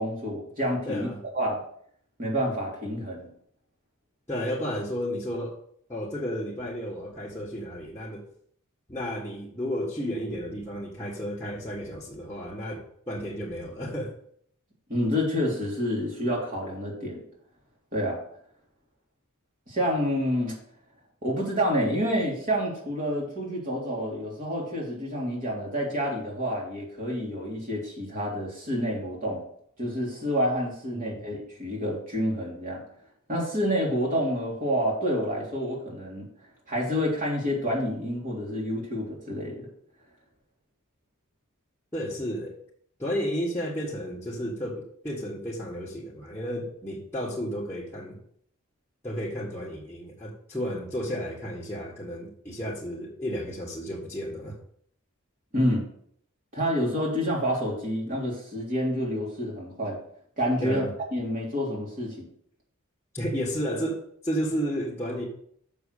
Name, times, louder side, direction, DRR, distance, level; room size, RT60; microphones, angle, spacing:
voice 1, 0.0-1.1 1.3-1.6 2.2-3.3 14.9-17.2 17.9-18.2 19.7-20.6 21.2-29.4 29.8-32.8 33.3-36.2 36.7-39.7 55.5-55.8 56.5-60.0 60.4-60.8 61.1-62.3, equal, 40° right, -3 dB, 3.3 m, -28 dB
voice 2, 0.9-1.2 4.3-5.6 5.9-8.2 8.9-14.1 30.9-31.2 41.9-42.6 43.0-48.2 49.0-54.6 60.6-60.9 63.1-65.3, equal, 10° left, -6 dB, 1.6 m, -32 dB
6.9 x 6.4 x 6.6 m, 0.64 s
head